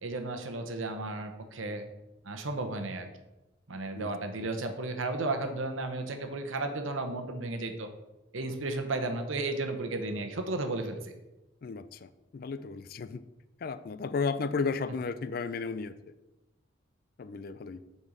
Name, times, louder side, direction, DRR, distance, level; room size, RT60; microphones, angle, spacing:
voice 1, 0.0-1.9 2.2-3.1 3.7-7.9 8.3-11.1, right 2 dB, 85° right, 6 dB, 0.9 m, -34 dB
voice 2, 11.6-13.2 13.6-15.9 17.2-17.8, left 4 dB, 50° left, 14 dB, 0.3 m, -34 dB
7.0 x 4.3 x 5.0 m, 1.0 s
head